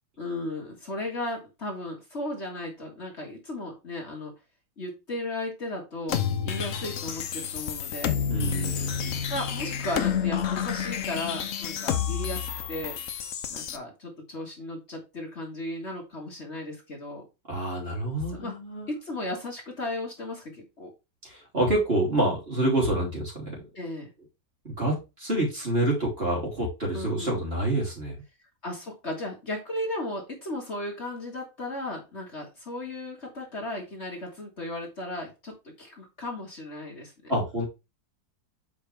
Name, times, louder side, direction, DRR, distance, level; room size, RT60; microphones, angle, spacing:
voice 1, 0.2-4.3 4.8-8.2 9.3-13.0 13.5-17.3 18.3-18.6 18.9-20.9 23.8-24.1 26.9-27.5 28.6-37.3, left 1 dB, 40° left, 0 dB, 1.9 m, -35 dB
sound 1, 6.1-13.8, left 8 dB, 60° left, 1.0 m, -30 dB
voice 2, 8.3-9.2 17.5-18.9 21.2-23.6 24.6-28.1 37.3-37.6, right 1 dB, 35° right, -2 dB, 3.2 m, -27 dB
7.4 x 5.1 x 3.3 m, 0.26 s
omnidirectional pair, 1.8 m